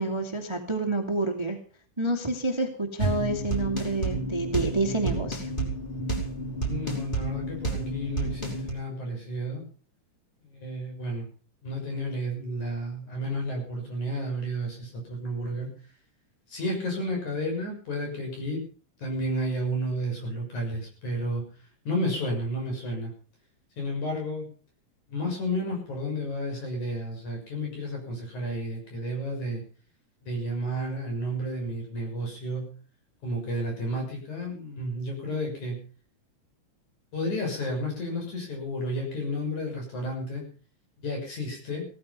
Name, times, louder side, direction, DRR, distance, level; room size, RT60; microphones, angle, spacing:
voice 1, 0.0-1.6 2.0-5.5, right 2 dB, 10° right, 4 dB, 1.8 m, -28 dB
sound 1, 3.0-8.7, right 2 dB, 15° left, 5.0 m, -30 dB
voice 2, 6.6-9.6 10.4-11.3 11.6-15.7 16.5-18.6 19.0-21.5 21.8-23.1 23.8-24.5 25.1-29.6 30.2-32.6 33.2-35.8 37.1-40.4 41.0-41.9, equal, 60° left, 1 dB, 7.9 m, -31 dB
17.5 x 14.0 x 5.5 m, 0.39 s
omnidirectional pair, 3.8 m